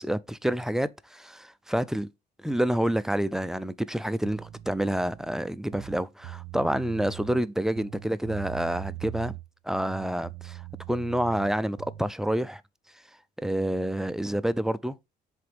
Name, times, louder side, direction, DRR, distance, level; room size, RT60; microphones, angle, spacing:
voice 1, 0.0-2.1 2.4-9.3 9.6-12.6 13.4-15.0, right 1 dB, 5° right, 0.3 m, -28 dB
sound 1, 4.2-5.3 5.7-7.4 7.8-9.5 9.7-12.1, right 16 dB, 80° right, 0.7 m, -41 dB
7.6 x 3.5 x 3.5 m
cardioid pair, 110°, 17 cm